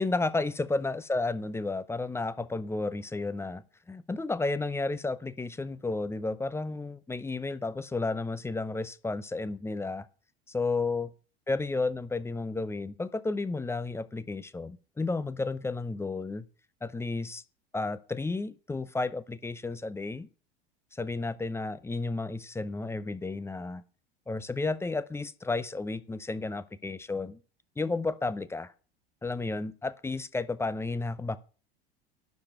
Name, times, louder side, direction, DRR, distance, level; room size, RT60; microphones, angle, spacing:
voice 1, 0.0-10.1 10.5-11.1 11.5-16.5 16.8-17.4 17.7-20.3 20.9-23.8 24.3-27.4 27.8-28.7 29.2-31.4, left 3 dB, 10° left, 0.7 m, -32 dB
11.5 x 4.9 x 7.8 m
figure-of-eight pair, 80°, 30 cm